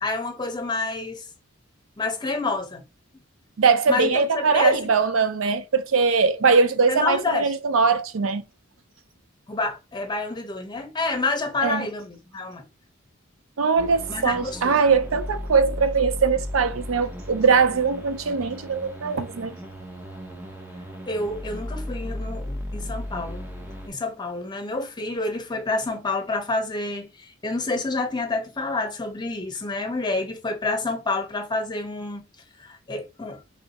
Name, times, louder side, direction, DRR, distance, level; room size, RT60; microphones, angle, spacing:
voice 1, 0.0-1.3 2.0-2.8 3.9-4.8 6.9-7.5 9.5-12.6 14.1-14.8 21.1-23.4 23.8-32.2 32.6-33.4, left 3 dB, 20° left, 0.8 m, -28 dB
voice 2, 3.6-8.4 11.6-11.9 13.6-19.5, right 5 dB, 80° right, 0.5 m, -21 dB
sound 1, 13.8-23.9, left 1 dB, 10° right, 0.6 m, -35 dB
3.2 x 2.7 x 4.1 m
head